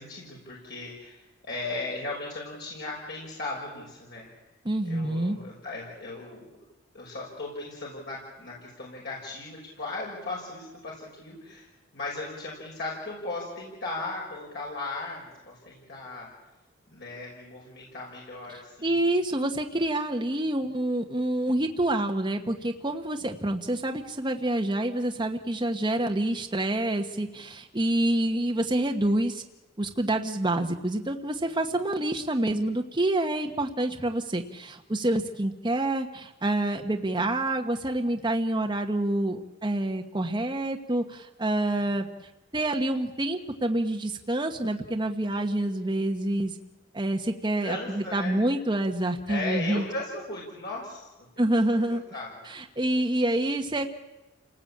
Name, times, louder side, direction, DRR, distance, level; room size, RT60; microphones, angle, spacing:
voice 1, 0.0-4.3 4.8-6.5 6.9-11.7 11.9-16.3 16.9-19.0 47.6-48.4 49.3-51.1 51.9-52.4, left 2 dB, 55° left, -4 dB, 6.2 m, -37 dB
voice 2, 4.6-5.4 18.8-29.4 29.8-42.0 42.5-46.5 46.9-49.9 51.4-52.0 52.4-53.9, right 1 dB, 25° right, 3 dB, 1.3 m, -27 dB
29.0 x 19.0 x 8.7 m, 1.0 s
head